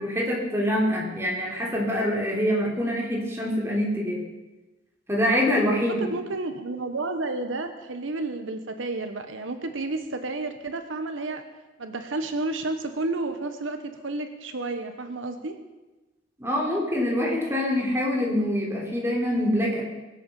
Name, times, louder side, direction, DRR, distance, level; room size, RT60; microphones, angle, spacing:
voice 1, 0.0-4.2 5.1-6.0 16.4-19.8, equal, 15° right, -2 dB, 3.3 m, -25 dB
voice 2, 5.9-11.4 11.8-15.6, right 2 dB, 80° right, 7 dB, 1.1 m, -31 dB
22.5 x 7.8 x 5.5 m, 1.1 s
head